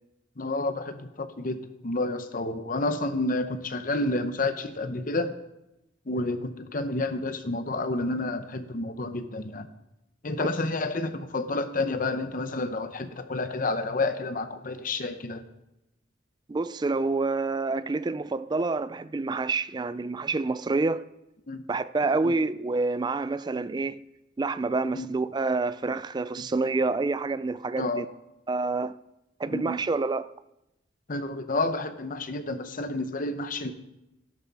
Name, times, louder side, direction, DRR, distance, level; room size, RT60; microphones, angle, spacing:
voice 1, 0.4-5.3 6.1-9.7 10.2-15.4 21.5-21.6 22.2-22.3 24.9-25.1 26.4-26.5 27.8-28.0 29.5-29.8 31.1-33.7, left 2 dB, 45° left, 0.8 m, -30 dB
voice 2, 16.5-21.0 21.7-24.0 24.4-28.1 28.5-28.9 29.4-30.3, right 3 dB, 20° right, 0.3 m, -28 dB
12.0 x 10.5 x 4.1 m
head